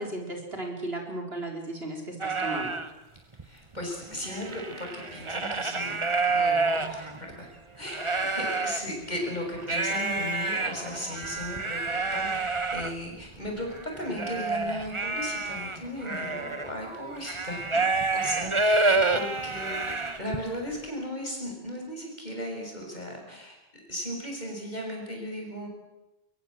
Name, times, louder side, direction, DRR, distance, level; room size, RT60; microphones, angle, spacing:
voice 1, 0.0-2.8, right 2 dB, 70° right, 2 dB, 4.7 m, -35 dB
sound 1, 2.2-2.9 3.4-3.5 3.7-7.3 7.8-8.8 9.6-20.4, right 3 dB, 30° right, 1.2 m, -28 dB
voice 2, 3.4-6.0 6.3-7.5 7.8-17.8 18.1-23.6 23.9-25.7, left 1 dB, 45° left, 1 dB, 6.9 m, -36 dB
22.5 x 22.5 x 7.7 m, 0.93 s
omnidirectional pair, 1.1 m